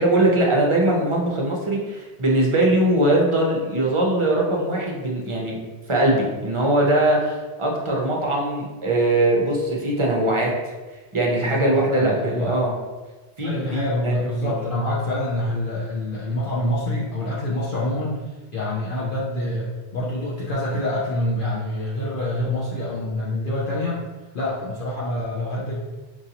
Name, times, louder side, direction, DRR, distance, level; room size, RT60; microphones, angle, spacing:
voice 1, 0.0-5.6 5.9-10.7 11.1-12.7 13.4-14.5, right 1 dB, 35° right, -2 dB, 0.6 m, -21 dB
voice 2, 11.4-12.5 13.4-18.2 18.5-24.1 24.3-25.7, left 1 dB, 55° left, -5 dB, 0.7 m, -26 dB
4.6 x 2.6 x 2.8 m, 1.2 s
omnidirectional pair, 1.1 m